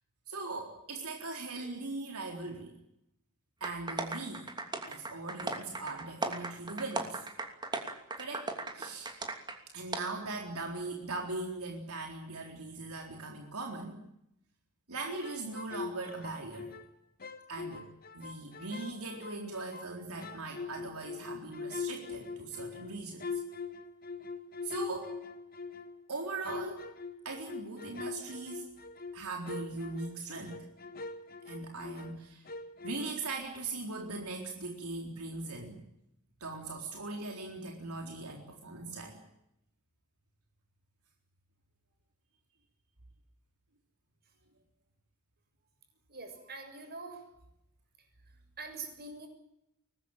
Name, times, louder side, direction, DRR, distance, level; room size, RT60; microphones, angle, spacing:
voice 1, 0.3-2.7 3.6-4.5 4.9-7.2 8.2-9.1 9.7-14.0 14.9-16.7 17.5-17.9 18.1-23.4 24.6-25.2 26.1-26.9 27.2-28.7 29.1-30.7 31.5-32.5 32.8-35.8 36.4-39.2, right 3 dB, 80° right, 2 dB, 4.0 m, -40 dB
sound 1, 3.6-9.6 9.9-10.0, right 3 dB, 20° right, 2.9 m, -37 dB
sound 2, 15.0-16.9 17.2-19.9 20.2-26.0 26.4-32.2 32.4-33.3, left 4 dB, 40° left, 1.8 m, -42 dB
voice 2, 46.1-47.2 48.6-49.3, right 3 dB, 45° right, 5 dB, 7.1 m, -44 dB
23.5 x 19.5 x 8.9 m, 0.81 s
head